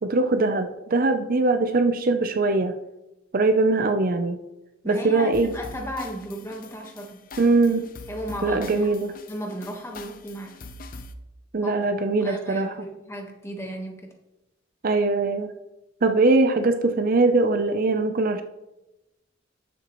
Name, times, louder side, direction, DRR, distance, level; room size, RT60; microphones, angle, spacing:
voice 1, 0.0-2.7 3.3-4.4 4.9-5.5 7.4-7.9 8.4-9.1 11.5-12.7 14.8-15.5 16.0-18.4, right 3 dB, 50° right, 8 dB, 0.6 m, -21 dB
voice 2, 4.8-7.3 8.1-8.9 9.3-10.6 11.6-14.1, equal, 15° left, 2 dB, 1.3 m, -35 dB
sound 1, 5.3-11.1, left 2 dB, 50° left, 0.6 m, -43 dB
12.5 x 7.1 x 3.1 m, 0.96 s
head